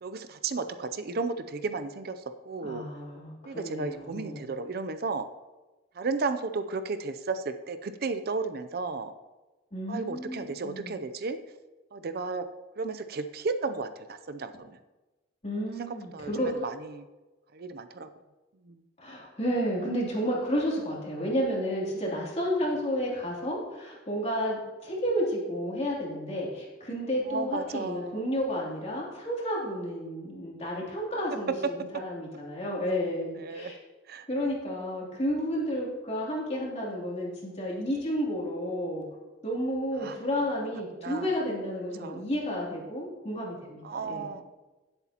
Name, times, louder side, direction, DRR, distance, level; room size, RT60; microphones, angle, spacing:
voice 1, 0.0-2.9 3.5-5.2 6.0-9.1 9.9-11.4 11.9-12.5 12.8-14.7 15.8-17.1 17.5-18.1 18.7-18.8 27.3-28.2 33.3-33.7 34.1-34.3 40.0-40.2 41.0-41.3 42.0-42.2 43.8-44.4, right 4 dB, 55° right, 10 dB, 0.5 m, -34 dB
voice 2, 2.6-4.5 9.7-10.9 15.4-16.6 19.0-33.8 34.3-39.0 39.4-44.3, equal, 35° left, -4 dB, 2.9 m, -31 dB
17.5 x 8.0 x 2.9 m, 1.2 s
head